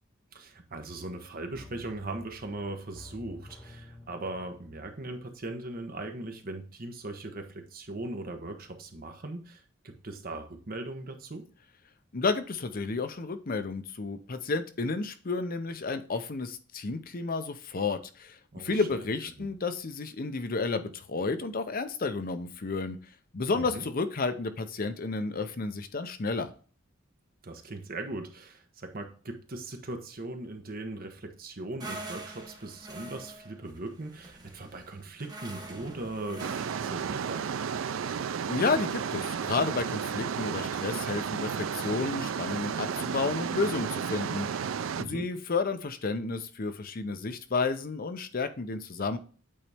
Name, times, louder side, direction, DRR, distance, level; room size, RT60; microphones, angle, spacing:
voice 1, 0.3-11.4 18.5-19.0 19.4-19.5 23.5-23.9 27.4-37.4 45.0-45.3, right 2 dB, 45° right, 5 dB, 1.1 m, -39 dB
sound 1, 1.5-6.2 6.5-6.6, left 2 dB, 15° left, 1.4 m, -51 dB
voice 2, 12.1-23.0 23.3-26.5 38.5-44.7 45.0-49.2, left 4 dB, 45° left, 9 dB, 0.7 m, -31 dB
sound 2, 31.8-37.0, right 2 dB, 20° right, 1.1 m, -44 dB
sound 3, 36.4-45.0, right 7 dB, 75° right, 0.4 m, -33 dB
8.6 x 4.1 x 3.5 m, 0.37 s
head